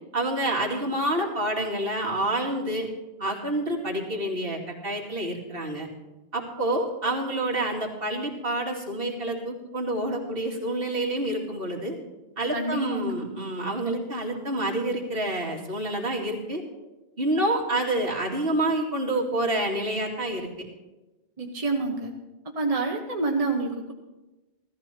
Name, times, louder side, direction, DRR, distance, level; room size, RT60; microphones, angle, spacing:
voice 1, 0.1-2.9 3.2-5.9 6.3-12.0 12.4-16.6 17.2-20.5, right 1 dB, 60° right, -1 dB, 2.5 m, -28 dB
voice 2, 12.5-13.3 21.4-22.1 22.5-23.9, right 3 dB, 35° right, 1 dB, 1.2 m, -28 dB
15.5 x 14.0 x 4.4 m, 1.1 s
omnidirectional pair, 1.1 m